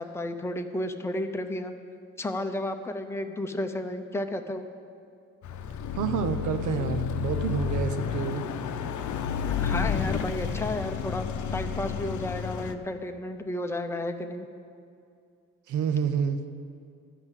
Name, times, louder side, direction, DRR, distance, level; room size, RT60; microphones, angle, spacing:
voice 1, 0.0-1.7 2.2-4.6 9.4-11.2 11.5-14.5, left 1 dB, 10° left, 6 dB, 0.7 m, -32 dB
Car passing by / Accelerating revving vroom, 5.4-12.7, left 7 dB, 75° left, 0.7 m, -31 dB
voice 2, 6.0-8.4 15.7-16.4, right 7 dB, 80° right, 8 dB, 0.8 m, -28 dB
12.0 x 5.5 x 8.1 m, 2.4 s
cardioid pair, 90°, 30 cm